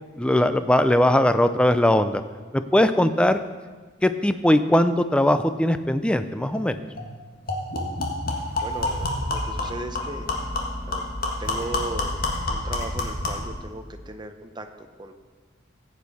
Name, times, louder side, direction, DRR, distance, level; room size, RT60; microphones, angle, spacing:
voice 1, 0.2-2.2 2.5-3.4 4.0-6.8, left 1 dB, 5° left, 10 dB, 0.4 m, -20 dB
sound 1, 6.6-6.7 7.0-7.1 7.5-13.5, left 2 dB, 50° left, 1.7 m, -28 dB
sound 2, 8.3-14.2, equal, 30° left, 2.1 m, -40 dB
voice 2, 8.6-10.3 10.8-11.1 11.4-15.1, right 2 dB, 25° right, 7 dB, 0.7 m, -37 dB
14.5 x 8.4 x 4.1 m, 1.4 s
head